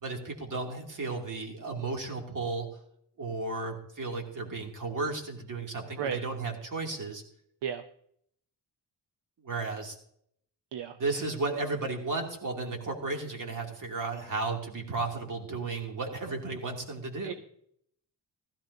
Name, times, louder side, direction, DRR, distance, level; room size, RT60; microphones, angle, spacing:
voice 1, 0.0-2.7 3.2-7.2 9.4-10.0 11.0-17.3, right 3 dB, 45° right, 1 dB, 2.7 m, -34 dB
voice 2, 6.0-6.2 7.6-7.8 10.7-10.9 17.2-17.3, right 8 dB, 75° right, 8 dB, 0.8 m, -33 dB
16.0 x 13.5 x 2.7 m, 0.68 s
cardioid pair, 105°, 42 cm